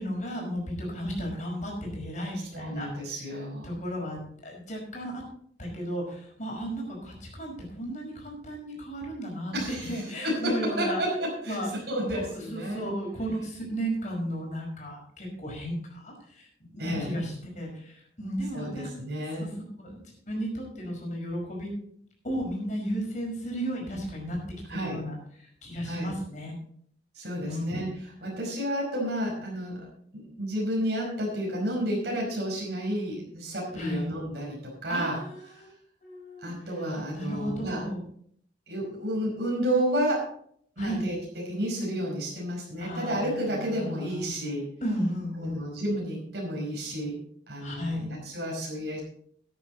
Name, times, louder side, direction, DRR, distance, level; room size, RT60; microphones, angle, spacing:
voice 1, 0.0-2.9 3.6-5.2 5.6-11.0 11.5-11.7 12.1-18.9 19.4-19.5 19.8-21.7 22.2-24.4 24.7-26.6 27.4-27.9 33.7-34.1 34.9-35.7 36.0-36.5 37.1-38.0 40.8-41.0 42.8-44.3 44.8-45.6 47.6-48.1, equal, 45° left, -1 dB, 5.3 m, -34 dB
voice 2, 2.5-3.7 9.5-9.9 10.2-12.8 16.8-17.1 18.5-19.5 24.7-25.0 25.9-26.1 27.2-27.9 28.2-29.8 30.1-35.2 35.5-35.6 36.4-37.8 38.7-40.2 40.8-44.7 45.4-47.2 47.5-49.0, equal, 65° right, -3 dB, 5.2 m, -31 dB
14.0 x 9.8 x 4.1 m, 0.63 s
head